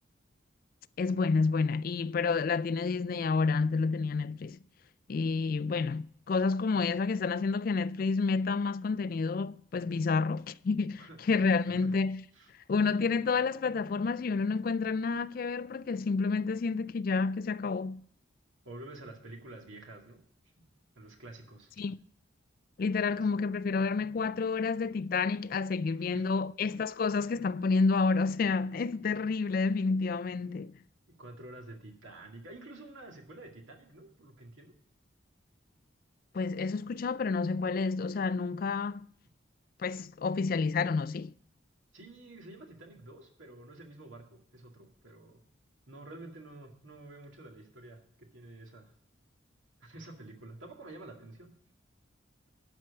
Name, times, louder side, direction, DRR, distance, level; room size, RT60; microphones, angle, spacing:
voice 1, 1.0-4.6 5.1-12.2 12.7-18.0 21.8-22.0 22.8-30.7 36.3-39.1 39.8-41.3, left 4 dB, 45° left, 0.3 m, -29 dB
voice 2, 11.5-11.9 12.3-12.5 18.6-20.2 21.0-21.7 26.0-26.3 31.2-34.7 41.9-45.4 45.9-48.9 49.8-51.5, right 2 dB, 80° right, 2.2 m, -49 dB
12.0 x 4.5 x 8.3 m
head